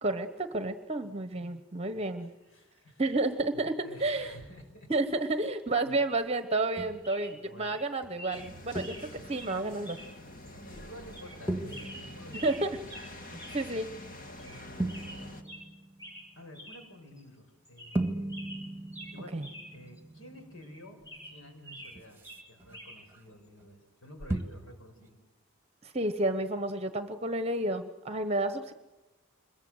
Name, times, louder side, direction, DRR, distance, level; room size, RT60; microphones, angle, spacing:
voice 1, 0.0-2.3 3.0-4.3 4.9-10.0 12.4-12.7 13.5-13.9 19.3-19.5 25.8-28.7, right 2 dB, 30° right, 9 dB, 1.0 m, -31 dB
voice 2, 1.9-3.1 3.5-4.9 5.8-6.0 7.3-7.8 9.1-9.3 10.5-12.9 14.4-15.7 16.4-18.4 19.1-21.0 21.2-25.2, equal, 65° left, 5 dB, 5.9 m, -51 dB
sound 1, 6.6-6.8 7.0-7.4 7.6-7.8 8.2-8.5 8.8-9.1 9.4-9.5 9.9-10.1 10.5-10.6 11.1-11.4 11.7-12.6 12.9-13.1 13.4-13.6 13.9-14.0 14.4-14.6 14.9-15.7 16.0-16.3 16.5-16.8 17.2-17.3 17.7-18.0 18.3-19.7 20.0-20.1 20.6-22.0 22.2-23.0 24.2-24.4, equal, 15° left, 6.6 m, -47 dB
sound 2, 6.8-7.2 8.0-8.2 8.8-9.5 11.5-13.6 14.8-16.7 17.9-23.2 23.5-23.7 24.3-24.7 25.0-25.1, right 1 dB, 10° right, 1.7 m, -38 dB
sound 3, 8.3-15.4, left 1 dB, 40° left, 2.0 m, -47 dB
26.0 x 22.0 x 8.0 m, 1.1 s
head